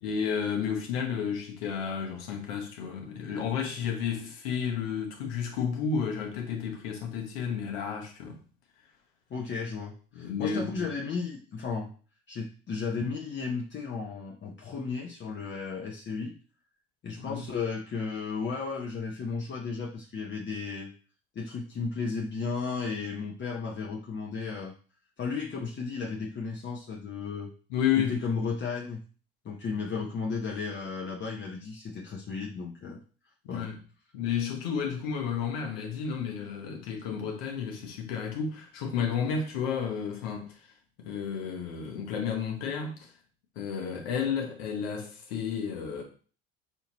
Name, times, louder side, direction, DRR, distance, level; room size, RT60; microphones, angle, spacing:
voice 1, 0.0-8.4 10.1-10.8 17.2-17.4 27.7-28.2 33.4-33.8 34.1-40.6 41.0-43.1 43.6-46.0, left 7 dB, 80° left, 1.1 m, -32 dB
voice 2, 9.3-11.9 12.3-16.3 17.0-20.9 21.3-24.7 25.2-27.5 28.0-29.0 29.4-33.0 33.5-33.7, left 5 dB, 40° left, 0.8 m, -34 dB
5.6 x 2.8 x 3.0 m
hypercardioid pair, 65°, 30 cm